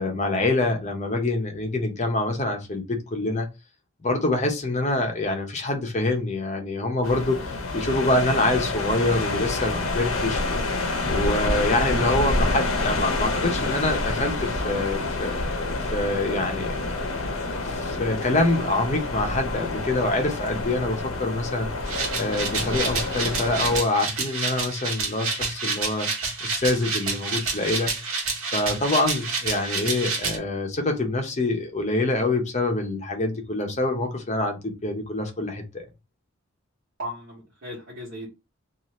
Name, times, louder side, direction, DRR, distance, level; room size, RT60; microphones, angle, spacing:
voice 1, 0.0-3.5 4.0-15.3 15.8-16.8 17.6-21.7 22.1-26.1 26.4-28.1 28.4-35.8, left 2 dB, 35° left, 0.7 m, -26 dB
sound 1, 7.0-23.8, left 2 dB, 80° left, 0.7 m, -28 dB
sound 2, 21.9-30.4, right 4 dB, 90° right, 1.0 m, -29 dB
voice 2, 37.0-38.3, equal, 60° right, 1.2 m, -36 dB
2.6 x 2.5 x 3.0 m
head